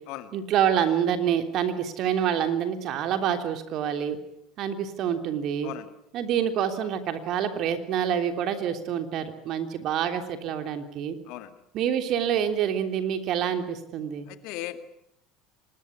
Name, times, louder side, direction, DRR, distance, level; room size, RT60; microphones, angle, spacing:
voice 1, 0.3-4.2 4.6-5.7 6.1-11.2 11.7-14.3, right 9 dB, 50° right, 8 dB, 3.3 m, -27 dB
voice 2, 14.3-14.9, left 14 dB, 60° left, 11 dB, 2.1 m, -37 dB
25.0 x 20.5 x 9.8 m, 0.77 s
figure-of-eight pair, 70°, 0 cm